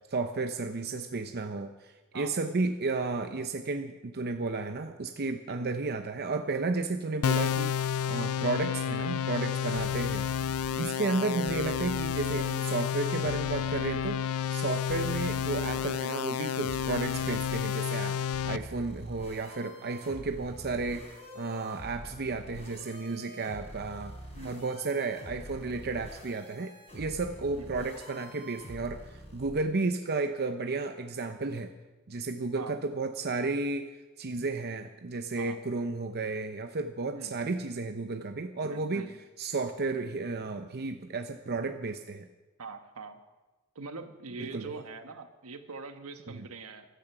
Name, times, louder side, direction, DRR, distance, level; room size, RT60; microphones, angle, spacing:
voice 1, 0.1-10.3 10.8-24.2 24.4-31.7 32.1-33.9 34.2-39.0 39.4-42.3 44.4-44.7 46.3-46.4, right 3 dB, 45° right, 6 dB, 0.7 m, -33 dB
sound 1, 7.2-18.6, left 8 dB, 70° left, 0.4 m, -31 dB
sound 2, 9.7-10.7 11.5-14.0 14.9-17.5 18.3-29.5, equal, 30° left, 3.7 m, -46 dB
voice 2, 10.7-11.2 24.3-24.7 27.6-27.7 32.5-32.8 35.4-35.6 37.1-37.3 38.6-39.2 42.6-43.2 43.7-46.9, right 4 dB, 75° right, 7 dB, 1.4 m, -43 dB
15.5 x 12.5 x 6.0 m, 1.2 s
head